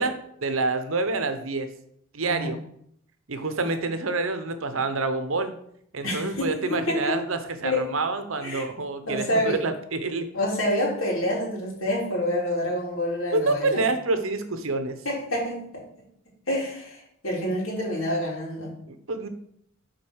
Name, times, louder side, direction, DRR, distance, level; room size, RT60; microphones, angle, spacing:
voice 1, 0.0-1.7 2.1-2.6 3.3-5.5 5.9-10.3 13.3-15.0 18.9-19.3, right 3 dB, 80° right, 9 dB, 0.9 m, -27 dB
voice 2, 2.2-2.5 6.0-7.1 7.6-7.9 8.4-8.6 9.0-9.6 10.3-13.8 15.0-15.8 16.5-18.7, left 1 dB, 80° left, -3 dB, 3.2 m, -27 dB
7.7 x 4.1 x 6.2 m, 0.70 s
head